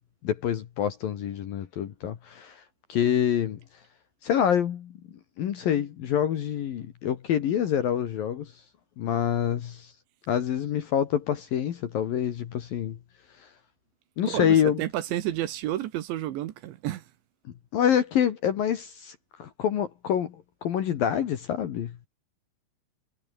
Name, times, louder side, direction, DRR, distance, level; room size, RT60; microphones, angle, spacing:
voice 1, 0.2-2.6 2.9-3.6 4.2-5.0 5.4-8.5 9.0-9.9 10.3-13.0 14.2-14.8 17.7-22.1, left 9 dB, 60° left, 2.7 m, -26 dB
voice 2, 14.3-17.0, right 13 dB, 70° right, 3.3 m, -30 dB
omnidirectional pair, 5.9 m